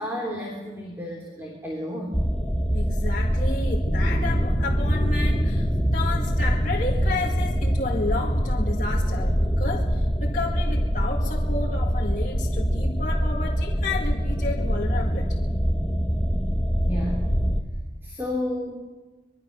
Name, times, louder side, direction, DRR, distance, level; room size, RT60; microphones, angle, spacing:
voice 1, 0.0-2.2 16.8-17.3 18.0-18.8, left 1 dB, 15° right, -1 dB, 3.4 m, -31 dB
sound 1, 2.1-17.6, equal, 5° left, 1.5 m, -24 dB
voice 2, 2.7-15.4, left 3 dB, 45° left, -3 dB, 1.9 m, -32 dB
25.5 x 21.0 x 6.7 m, 1.2 s
head